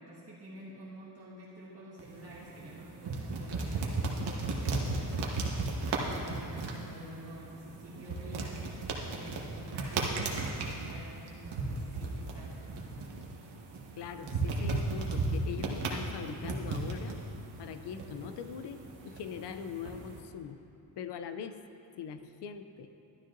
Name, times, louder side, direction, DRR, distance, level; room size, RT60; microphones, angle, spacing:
voice 1, 0.0-12.6, right 1 dB, 35° right, -9 dB, 1.5 m, -49 dB
sound 1, 2.0-20.2, right 3 dB, 85° right, 1.3 m, -36 dB
voice 2, 14.0-17.2 17.6-20.6 21.0-21.6 22.0-22.9, left 7 dB, 90° left, 9 dB, 0.6 m, -42 dB
12.5 x 12.0 x 2.6 m, 2.7 s
wide cardioid pair, 165°, 40 cm